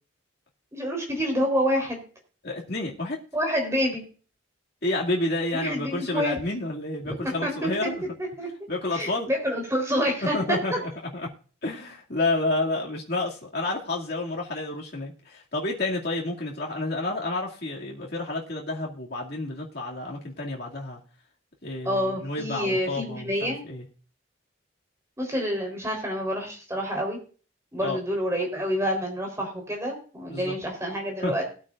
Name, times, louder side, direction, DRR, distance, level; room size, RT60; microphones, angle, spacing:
voice 1, 0.7-2.1 3.3-4.0 5.5-6.4 7.4-7.9 8.4-8.5 8.9-10.8 21.8-23.6 25.2-27.2 27.7-31.4, equal, 15° right, 1 dB, 3.8 m, -27 dB
voice 2, 2.4-3.2 4.8-8.0 8.7-9.3 10.3-10.9 11.6-21.0 21.6-23.8 27.8-28.0 30.3-30.5 31.2-31.3, left 2 dB, 50° left, -2 dB, 2.4 m, -30 dB
19.5 x 9.0 x 2.5 m, 0.39 s
head